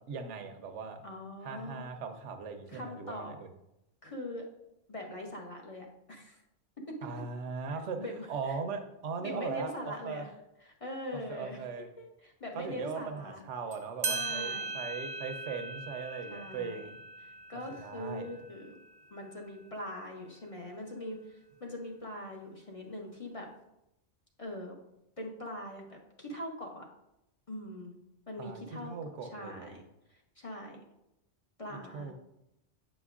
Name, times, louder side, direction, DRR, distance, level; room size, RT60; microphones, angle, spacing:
voice 1, 0.1-1.0 1.4-3.5 7.0-10.3 11.1-11.9 12.6-17.0 17.8-18.3 28.4-29.7 31.7-32.1, right 5 dB, 80° right, 6 dB, 1.0 m, -39 dB
voice 2, 1.0-1.8 2.7-3.3 4.0-4.5 4.9-6.4 7.7-8.6 9.2-10.3 10.6-11.7 12.0-13.4 14.0-14.7 16.3-16.9 17.2-18.8 19.1-23.5 24.4-24.8 25.2-26.9 27.5-28.0 28.3-28.9 29.3-29.8 30.1-30.8 31.6-32.1, left 1 dB, 35° left, 0 dB, 0.6 m, -42 dB
sound 1, 13.7-13.8 14.0-19.1, right 3 dB, 45° right, 0.5 m, -39 dB
7.6 x 5.2 x 2.4 m, 0.87 s
omnidirectional pair, 1.2 m